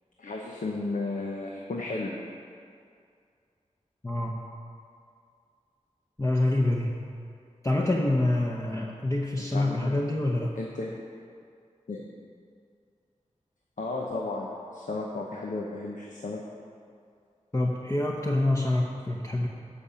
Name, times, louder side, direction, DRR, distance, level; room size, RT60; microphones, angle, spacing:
voice 1, 0.2-2.1 9.4-10.0 10.6-11.0 11.9-12.1 13.8-16.4, left 2 dB, 80° left, -1 dB, 0.9 m, -34 dB
voice 2, 4.0-4.4 6.2-6.9 7.6-10.5 17.5-19.5, left 1 dB, 25° left, -3 dB, 0.9 m, -26 dB
14.0 x 5.2 x 5.7 m, 2.3 s
wide cardioid pair, 50°, 13 cm